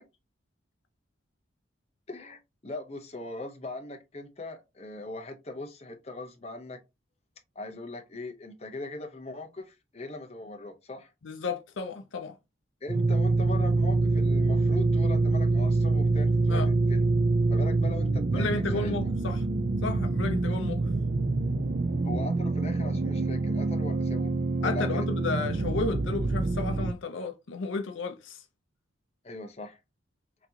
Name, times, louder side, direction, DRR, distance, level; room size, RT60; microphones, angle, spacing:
voice 1, 2.1-6.8 7.5-11.1 12.8-17.1 17.5-18.9 22.0-24.3 24.6-25.1 29.2-29.8, left 2 dB, 30° left, 0.9 m, -40 dB
voice 2, 11.2-12.4 16.5-16.7 18.3-19.4 19.8-20.8 24.6-28.4, left 3 dB, 70° left, 0.6 m, -33 dB
sound 1, 12.9-26.9, right 3 dB, 40° right, 0.5 m, -26 dB
5.9 x 2.9 x 2.8 m
head